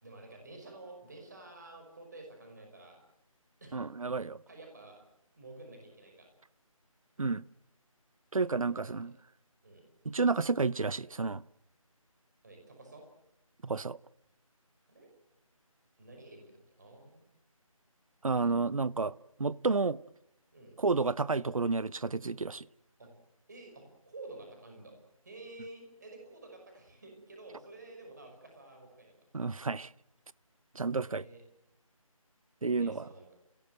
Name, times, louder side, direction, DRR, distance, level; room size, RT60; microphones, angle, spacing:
voice 1, 0.0-3.0 3.6-3.8 4.5-5.0 5.3-6.3 8.5-9.1 9.6-9.9 12.4-13.0 14.9-15.1 16.0-17.2 20.5-20.7 23.0-23.1 23.5-24.9 25.2-29.1 30.9-31.4 32.8-33.3, right 2 dB, 30° right, 5.6 m, -50 dB
voice 2, 3.7-4.4 7.2-7.4 8.3-9.1 10.0-11.4 13.6-14.0 18.2-19.1 19.4-20.0 20.8-22.7 29.3-29.9 30.7-31.2 32.6-33.0, right 4 dB, 70° right, 0.8 m, -30 dB
30.0 x 17.0 x 7.9 m
figure-of-eight pair, 175°, 18 cm